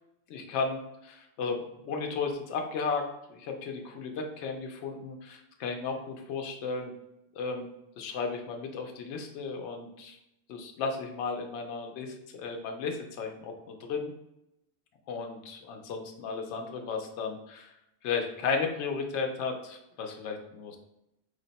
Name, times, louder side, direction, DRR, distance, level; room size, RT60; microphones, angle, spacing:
voice 1, 0.3-6.9 7.3-7.7 8.0-10.2 10.5-14.1 15.1-17.7 18.0-20.8, left 4 dB, 75° left, 3 dB, 0.8 m, -34 dB
3.2 x 2.1 x 3.9 m, 0.84 s
omnidirectional pair, 1.2 m